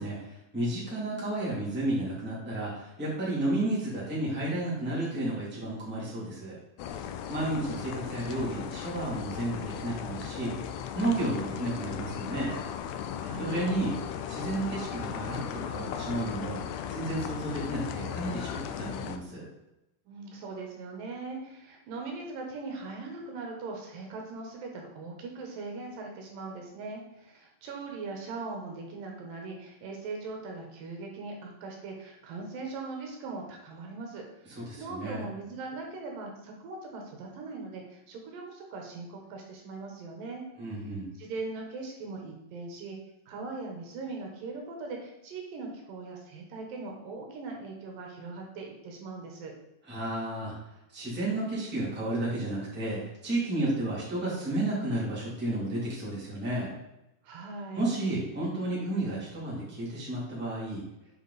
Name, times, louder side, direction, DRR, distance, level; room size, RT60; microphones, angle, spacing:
voice 1, 0.0-6.6 7.3-10.6 10.9-12.6 13.4-14.0 14.3-16.6 16.9-19.5 34.5-35.3 40.6-41.1 49.8-50.5 50.9-56.7 57.7-60.8, right 1 dB, 5° right, -7 dB, 1.8 m, -32 dB
sound 1, 6.8-19.2, left 8 dB, 90° left, 1.7 m, -37 dB
voice 2, 13.2-13.8 20.1-40.4 41.2-43.0 43.3-49.5 57.2-57.9, right 3 dB, 75° right, 1 dB, 2.7 m, -40 dB
7.2 x 5.1 x 4.0 m, 0.89 s
omnidirectional pair, 4.1 m